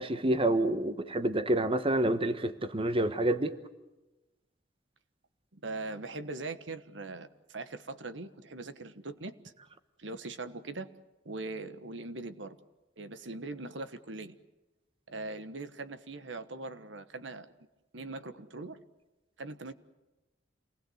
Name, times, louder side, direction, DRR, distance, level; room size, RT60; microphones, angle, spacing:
voice 1, 0.0-3.5, right 1 dB, 30° right, 10 dB, 1.1 m, -28 dB
voice 2, 5.5-9.5 10.0-10.9 11.2-12.6 13.0-14.3 15.1-17.5 17.9-18.8 19.4-19.7, right 2 dB, 75° right, 10 dB, 1.4 m, -41 dB
28.0 x 20.0 x 7.9 m, 1.0 s
head